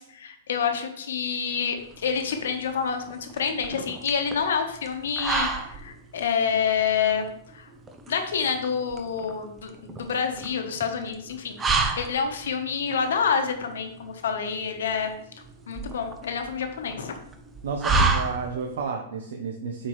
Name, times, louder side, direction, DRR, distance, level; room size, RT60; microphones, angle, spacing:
voice 1, 0.0-7.7 8.1-15.1 15.7-17.1, left 6 dB, 85° left, 6 dB, 1.1 m, -28 dB
sound 1, 1.8-18.8, right 3 dB, 10° right, 0.5 m, -31 dB
voice 2, 17.6-19.9, right 5 dB, 70° right, 3 dB, 0.8 m, -31 dB
7.5 x 4.5 x 3.2 m, 0.73 s
supercardioid pair, 170°, 0 cm